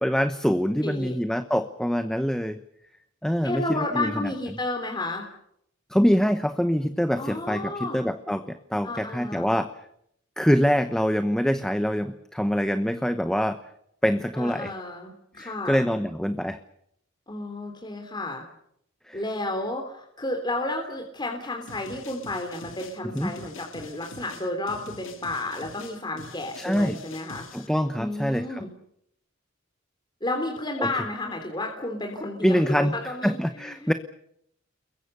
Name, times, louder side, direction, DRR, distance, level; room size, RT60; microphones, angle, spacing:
voice 1, 0.0-2.6 3.2-4.3 5.9-9.7 10.4-13.6 14.0-14.7 15.4-16.6 19.1-19.2 23.1-23.3 26.6-27.0 27.5-28.6 30.8-30.9 32.4-32.9 33.2-33.9, equal, 5° left, 9 dB, 0.9 m, -24 dB
voice 2, 0.8-1.1 3.4-5.3 7.2-8.0 8.8-9.5 14.3-15.8 17.3-18.4 19.1-27.7 28.0-28.7 30.2-33.9, left 2 dB, 20° left, 2 dB, 3.2 m, -32 dB
sound 1, 21.7-27.7, left 3 dB, 70° left, 3.3 m, -45 dB
29.5 x 22.0 x 6.7 m, 0.74 s
head